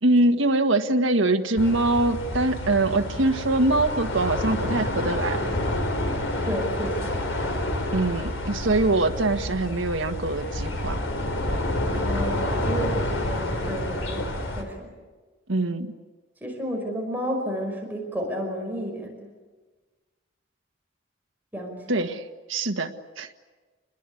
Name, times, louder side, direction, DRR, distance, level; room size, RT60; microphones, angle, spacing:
voice 1, 0.0-5.5 7.9-11.0 15.5-15.9 21.9-22.2 22.5-22.9 23.2-23.3, right 2 dB, 85° right, 4 dB, 1.7 m, -23 dB
sound 1, 1.6-14.6, left 1 dB, 85° left, 4.4 m, -28 dB
voice 2, 6.4-7.2 11.9-14.3 14.6-14.9 16.4-19.2 21.5-22.0, equal, 10° right, 0 dB, 5.4 m, -31 dB
28.5 x 21.5 x 8.6 m, 1.3 s
head